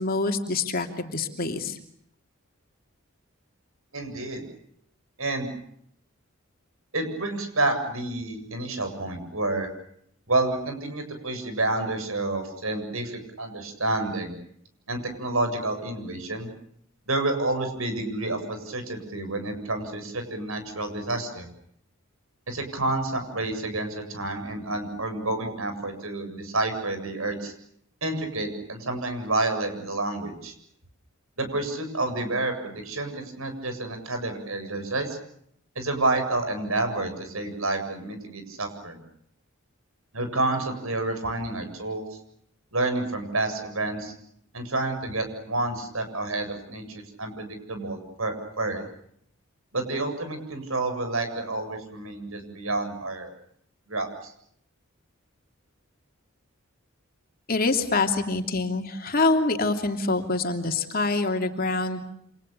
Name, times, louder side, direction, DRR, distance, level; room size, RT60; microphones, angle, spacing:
voice 1, 0.0-1.8 57.5-62.0, left 3 dB, 45° left, 4 dB, 2.9 m, -25 dB
voice 2, 3.9-4.4 5.2-5.5 6.9-9.7 10.3-14.4 14.9-16.5 17.1-21.5 22.5-27.5 28.0-30.5 31.4-35.2 35.8-39.0 40.1-42.1 42.7-44.1 44.5-48.8 49.7-53.3 53.9-54.3, right 2 dB, 80° right, 7 dB, 7.8 m, -29 dB
30.0 x 27.0 x 6.8 m, 0.70 s
head